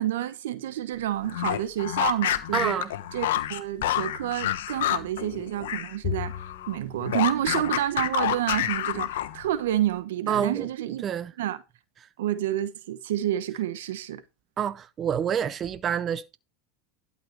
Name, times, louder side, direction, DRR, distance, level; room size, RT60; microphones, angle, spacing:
voice 1, 0.0-2.8 3.1-6.3 6.7-11.1 11.4-11.6 12.2-14.2, right 12 dB, 85° right, 1.1 m, -29 dB
sound 1, 1.2-6.0 6.2-9.5, left 13 dB, 85° left, 1.1 m, -28 dB
voice 2, 2.5-2.9 10.3-10.7 11.0-11.3 14.6-16.4, right 8 dB, 35° right, 0.7 m, -27 dB
Bowed string instrument, 6.0-8.6, left 10 dB, 50° left, 1.2 m, -37 dB
12.0 x 5.4 x 4.7 m
supercardioid pair, 105°, 0 cm